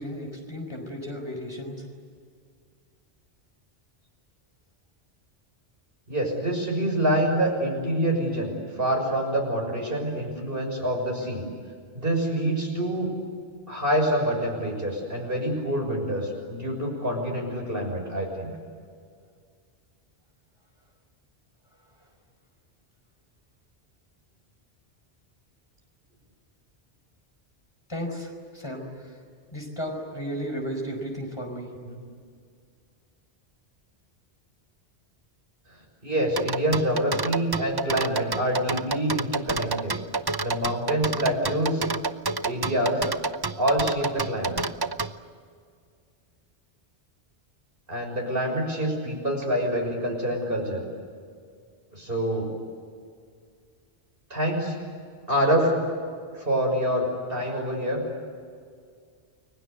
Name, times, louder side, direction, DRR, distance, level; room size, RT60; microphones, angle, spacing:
voice 1, 0.0-1.8 27.9-29.2 29.5-31.7, equal, 25° left, 2 dB, 5.0 m, -34 dB
voice 2, 6.1-11.4 11.9-13.1 13.7-18.5 31.9-32.0 36.0-40.0 40.4-41.8 42.4-43.0 43.6-44.6 47.9-50.8 51.9-52.5 54.3-54.7 55.3-55.8 56.3-58.0, equal, 55° right, 1 dB, 6.6 m, -26 dB
sound 1, 36.4-45.1, right 3 dB, 25° right, 0.6 m, -28 dB
30.0 x 23.0 x 8.3 m, 2.1 s
omnidirectional pair, 1.1 m